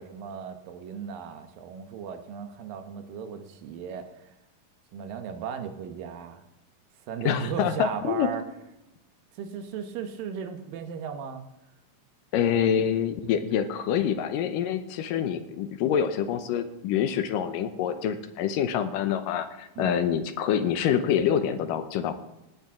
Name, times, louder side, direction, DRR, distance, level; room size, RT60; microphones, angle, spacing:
voice 1, 0.0-4.1 4.9-6.4 7.1-8.4 9.3-11.4 19.8-19.9, right 7 dB, 75° right, 7 dB, 2.7 m, -36 dB
voice 2, 7.2-8.3 12.3-22.1, left 8 dB, 80° left, 9 dB, 2.3 m, -26 dB
18.5 x 10.5 x 3.6 m, 0.95 s
omnidirectional pair, 4.1 m